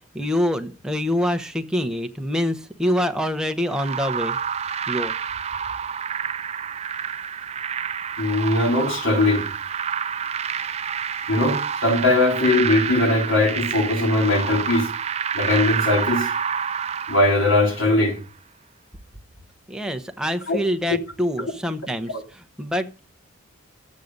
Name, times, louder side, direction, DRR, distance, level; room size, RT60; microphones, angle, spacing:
voice 1, 0.1-4.4 4.9-5.1 19.7-23.0, equal, 5° right, 0.8 m, -25 dB
sound 1, 3.7-18.1, right 7 dB, 30° right, 0.5 m, -28 dB
voice 2, 8.2-9.5 11.3-14.9 15.3-16.3 17.1-18.2 20.5-20.6 20.9-21.0 21.4-21.5 22.1-22.2, left 2 dB, 80° left, 3.1 m, -20 dB
12.0 x 8.3 x 5.2 m
head